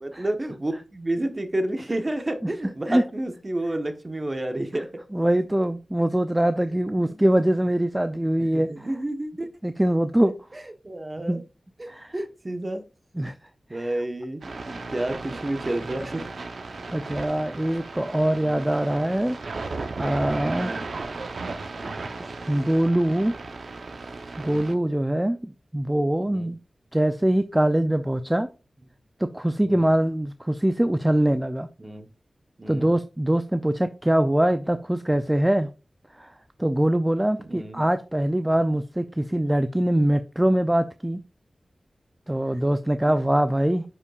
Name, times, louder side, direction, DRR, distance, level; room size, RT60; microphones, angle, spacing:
voice 1, 0.0-4.9 7.0-7.3 8.4-9.5 10.5-11.4 11.8-12.9 13.7-14.4 14.7-16.2 20.5-20.8 21.7-22.0 24.4-24.6 26.3-26.5 29.6-29.9 31.8-32.1 32.6-32.9 37.4-37.8, right 1 dB, 30° right, 1.1 m, -31 dB
voice 2, 5.1-8.9 9.6-10.3 11.3-11.4 11.9-12.2 13.2-13.3 13.7-13.9 16.9-19.4 19.7-20.7 22.0-23.3 24.4-26.6 26.9-28.5 29.2-31.7 32.7-35.7 36.1-36.3 36.6-41.2 42.3-43.8, right 1 dB, 15° right, 0.4 m, -23 dB
sound 1, 14.4-24.7, right 3 dB, 75° right, 0.8 m, -35 dB
9.6 x 5.5 x 2.4 m
wide cardioid pair, 75°, 0 cm